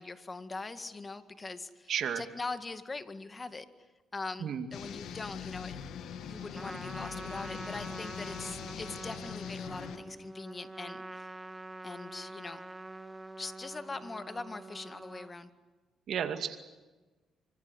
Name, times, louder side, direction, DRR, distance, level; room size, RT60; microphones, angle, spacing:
voice 1, 0.0-3.7 4.1-5.8 6.2-11.3 11.8-12.6 13.4-15.5, left 3 dB, 25° left, 10 dB, 1.9 m, -42 dB
voice 2, 1.9-2.2 4.4-4.7 16.1-16.6, right 8 dB, 65° right, 7 dB, 2.4 m, -32 dB
sound 1, 4.7-10.0, left 7 dB, 80° left, 2.0 m, -42 dB
Trumpet, 6.5-15.3, right 2 dB, 15° right, 1.3 m, -45 dB
26.0 x 25.0 x 8.1 m, 1.2 s
cardioid pair, 90°, 0 cm